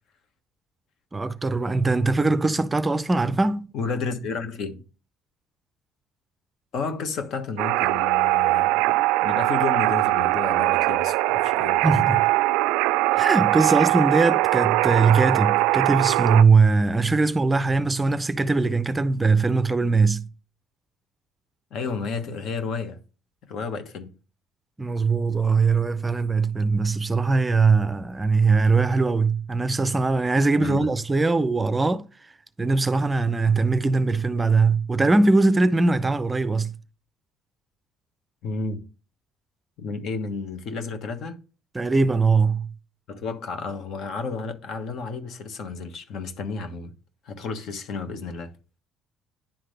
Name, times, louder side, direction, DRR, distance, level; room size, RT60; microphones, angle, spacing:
voice 1, 1.1-3.7 11.8-12.2 13.1-20.3 24.8-32.1 32.6-36.7 41.7-42.7, right 3 dB, 15° right, 0.5 m, -21 dB
voice 2, 3.7-4.8 6.7-12.2 21.7-23.0 23.5-24.1 30.6-30.9 38.4-38.8 39.8-41.4 43.1-46.9 47.2-48.5, left 4 dB, 60° left, 1.3 m, -32 dB
sound 1, 7.6-16.4, right 18 dB, 85° right, 0.3 m, -21 dB
10.5 x 3.8 x 3.3 m
cardioid pair, 105°, 0 cm